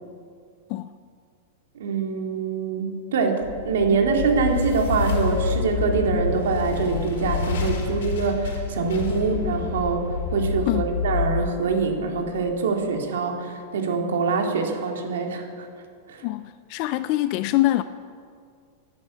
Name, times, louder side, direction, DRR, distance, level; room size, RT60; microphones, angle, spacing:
voice 1, 1.7-15.7 16.1-16.3, right 4 dB, 85° right, 3 dB, 2.2 m, -24 dB
sound 1, 3.4-12.6, left 5 dB, 80° left, 3.5 m, -28 dB
voice 2, 16.2-17.8, left 16 dB, 40° left, 13 dB, 0.4 m, -24 dB
12.0 x 10.5 x 8.4 m, 2.2 s
supercardioid pair, 160°, 0 cm